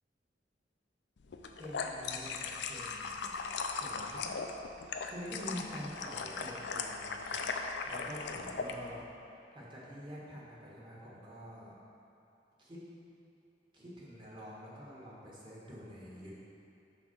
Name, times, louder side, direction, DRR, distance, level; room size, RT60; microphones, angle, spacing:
sound 1, 1.3-8.8, left 5 dB, 70° left, 0.4 m, -38 dB
voice 1, 1.6-3.3 3.8-4.3 5.0-7.4 7.8-9.0 9.3-11.7 12.6-12.8 13.7-16.4, equal, 25° right, -6 dB, 1.5 m, -47 dB
5.8 x 4.8 x 6.0 m, 2.8 s
head